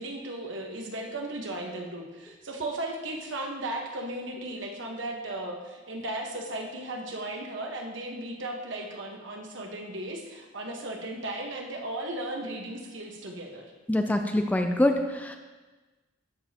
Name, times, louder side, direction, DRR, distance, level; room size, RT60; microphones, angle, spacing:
voice 1, 0.0-13.7, right 1 dB, 65° right, 1 dB, 1.3 m, -36 dB
voice 2, 13.9-15.4, left 1 dB, 10° left, 5 dB, 0.4 m, -25 dB
13.0 x 7.0 x 2.9 m, 1.2 s
head